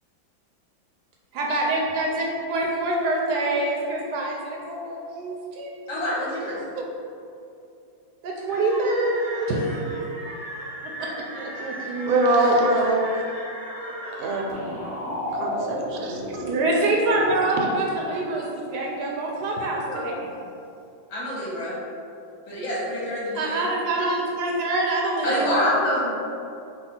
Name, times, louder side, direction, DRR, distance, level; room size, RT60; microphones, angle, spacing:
voice 1, 1.3-5.9 8.2-9.8 11.0-11.1 11.3-12.2 16.4-18.5 18.7-20.1 23.3-25.5, right 2 dB, 70° right, -2 dB, 1.0 m, -25 dB
voice 2, 5.9-6.6 19.9-20.0 21.1-21.8 22.5-23.6 25.2-26.1, left 1 dB, 80° left, -8 dB, 2.1 m, -26 dB
sound 1, 8.5-16.8, equal, 25° left, 0.8 m, -34 dB
voice 3, 12.0-13.2 14.2-14.7 15.3-16.5, right 2 dB, 90° right, 1 dB, 1.4 m, -23 dB
4.7 x 2.3 x 4.3 m, 2.6 s
omnidirectional pair, 2.1 m